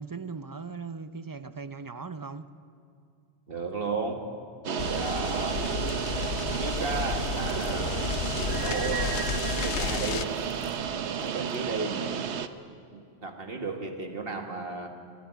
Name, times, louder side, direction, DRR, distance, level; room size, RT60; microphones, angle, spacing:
voice 1, 0.0-2.5, right 4 dB, 30° right, 0.4 m, -38 dB
voice 2, 3.5-4.3 4.6-5.7 6.5-7.9 8.4-10.3 11.2-12.1 12.9-14.9, right 3 dB, 60° right, 2.0 m, -34 dB
sound 1, 4.6-12.5, right 8 dB, 80° right, 1.1 m, -32 dB
sound 2, 4.8-10.3, left 9 dB, 85° left, 1.0 m, -33 dB
sound 3, 6.4-12.3, equal, 25° left, 5.1 m, -49 dB
25.5 x 12.5 x 9.4 m
omnidirectional pair, 1.1 m